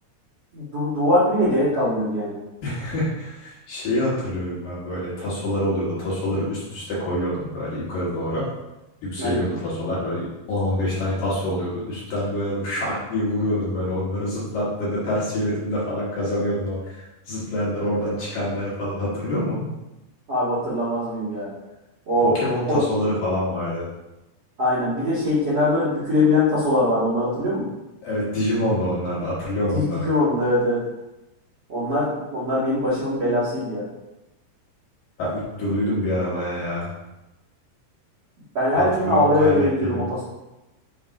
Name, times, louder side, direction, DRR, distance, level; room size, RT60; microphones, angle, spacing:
voice 1, 0.5-2.4 9.2-9.4 20.3-21.5 22.1-22.3 22.7-22.8 24.6-27.7 29.7-30.8 31.7-33.9 38.5-40.2, left 1 dB, 50° right, -11 dB, 2.0 m, -22 dB
voice 2, 2.6-8.5 9.0-19.7 22.2-23.9 28.0-30.1 35.2-36.9 38.8-40.0, left 1 dB, 55° left, -8 dB, 3.0 m, -26 dB
7.2 x 3.9 x 4.9 m, 1.0 s
omnidirectional pair, 5.4 m